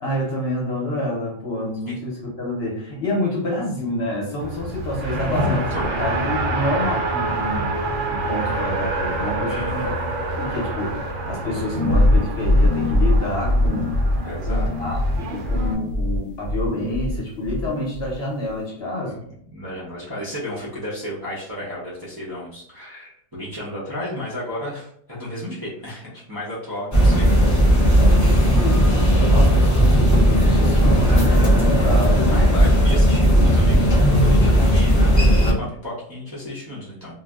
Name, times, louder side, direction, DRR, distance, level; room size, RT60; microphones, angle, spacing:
voice 1, 0.0-5.6 6.0-7.7 8.1-9.9 10.4-13.9 14.5-19.2 28.0-32.7, left 1 dB, 55° left, -2 dB, 1.0 m, -28 dB
Race car auto racing, 4.4-15.7, right 2 dB, 70° right, 0.9 m, -27 dB
voice 2, 5.1-6.0 9.5-10.0 14.2-14.7 19.0-27.4 32.3-37.1, left 1 dB, 20° right, -8 dB, 0.6 m, -33 dB
sound 1, 11.7-17.2 17.4-18.2, left 1 dB, 80° left, 1.0 m, -21 dB
sound 2, 26.9-35.5, equal, 20° left, 0.5 m, -16 dB
2.6 x 2.1 x 3.4 m, 0.67 s
omnidirectional pair, 1.4 m